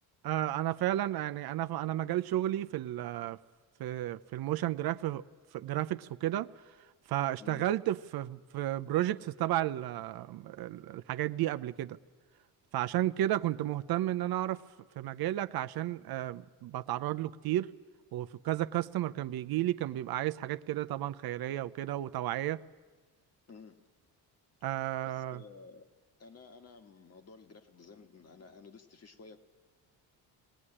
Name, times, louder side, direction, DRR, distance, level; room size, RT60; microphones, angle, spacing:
voice 1, 0.2-3.4 3.8-5.2 5.5-6.5 7.1-12.0 12.7-14.6 15.0-17.7 18.1-22.6 24.6-25.4, right 14 dB, 65° right, 0.6 m, -32 dB
voice 2, 7.4-7.7 23.5-23.8 25.0-25.9 26.2-29.4, left 4 dB, 40° left, 1.6 m, -53 dB
20.5 x 17.5 x 9.9 m
cardioid pair, 105°, 40 cm